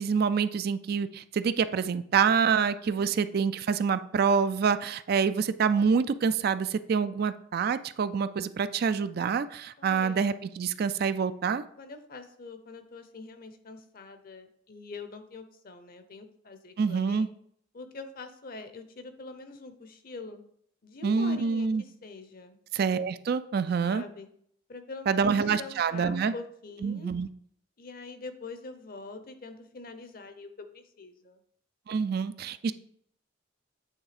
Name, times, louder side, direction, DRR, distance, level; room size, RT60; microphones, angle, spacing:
voice 1, 0.0-11.6 16.8-17.3 21.0-21.8 22.7-24.0 25.1-26.3 26.8-27.3 31.9-32.7, right 6 dB, 50° right, 13 dB, 0.3 m, -26 dB
voice 2, 2.8-3.4 9.8-10.3 11.8-17.3 17.7-20.4 20.8-22.6 23.8-24.3 24.7-27.1 27.8-31.4, left 3 dB, 50° left, 9 dB, 0.8 m, -44 dB
8.7 x 3.7 x 4.9 m, 0.66 s
head